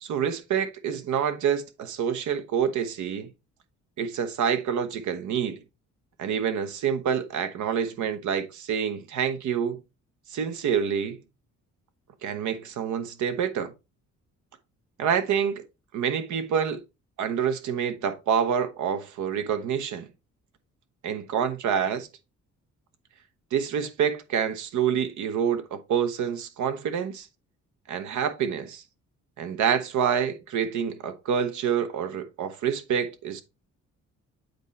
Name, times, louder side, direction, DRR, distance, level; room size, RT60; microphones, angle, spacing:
voice 1, 0.0-3.3 4.0-5.6 6.2-9.8 10.3-11.2 12.2-13.7 15.0-15.6 15.9-16.8 17.2-20.1 21.0-22.1 23.5-27.3 27.9-28.8 29.4-33.4, right 8 dB, 75° right, 1.0 m, -27 dB
8.0 x 4.2 x 3.2 m
cardioid pair, 90°, 30 cm